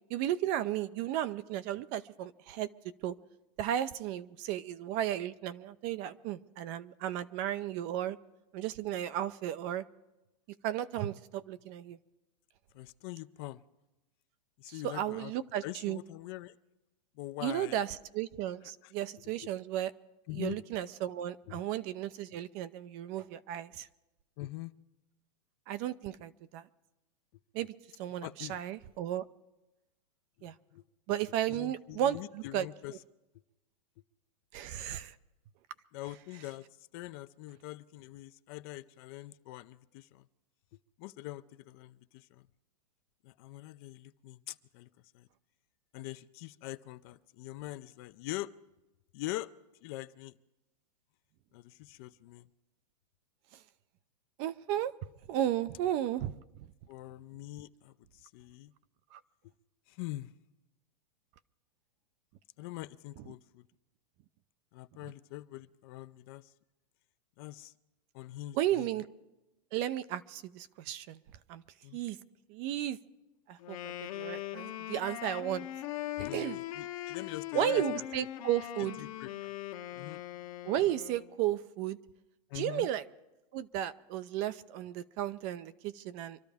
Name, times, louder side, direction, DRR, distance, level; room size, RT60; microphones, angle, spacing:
voice 1, 0.1-2.7 3.0-3.1 3.6-8.2 8.5-9.8 10.6-12.0 14.7-16.0 17.4-19.9 20.4-23.9 25.7-26.7 27.5-27.7 28.0-29.2 30.4-30.5 31.1-32.7 34.5-35.1 54.4-54.9 55.3-56.7 59.1-59.2 68.5-69.1 69.7-71.2 71.5-71.6 71.9-72.2 72.5-73.0 73.5-75.7 76.3-76.6 77.5-79.0 80.6-82.0 82.5-83.0 83.5-86.4, right 12 dB, 35° right, 14 dB, 0.5 m, -34 dB
voice 2, 12.7-13.6 14.6-15.3 15.6-16.5 17.2-17.8 18.8-18.9 19.4-19.5 20.3-20.6 21.5-21.6 24.4-24.7 28.2-28.6 30.4-30.8 31.5-32.9 35.9-36.7 36.9-40.3 41.0-42.5 43.2-44.9 45.1-45.3 45.9-48.5 49.1-49.5 49.8-50.4 51.5-52.5 56.0-56.1 56.9-58.7 59.9-60.3 62.6-63.7 64.7-66.5 67.4-67.7 68.1-68.9 71.8-72.0 76.2-78.0 79.0-79.5 79.9-80.2 82.5-82.9, left 17 dB, 40° left, 13 dB, 0.5 m, -43 dB
Wind instrument woodwind instrument, 73.6-81.3, left 14 dB, 60° left, 1.2 m, -40 dB
25.5 x 12.5 x 3.5 m, 0.99 s
hypercardioid pair, 145°, 20 cm